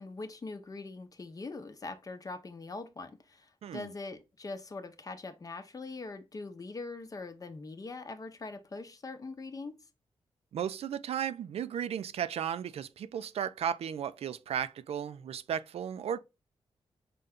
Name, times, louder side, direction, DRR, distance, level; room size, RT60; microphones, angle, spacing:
voice 1, 0.0-9.8, left 3 dB, 35° left, 0.7 m, -42 dB
voice 2, 10.5-16.2, right 9 dB, 75° right, 0.4 m, -35 dB
5.2 x 2.2 x 3.6 m
cardioid pair, 90°, 10 cm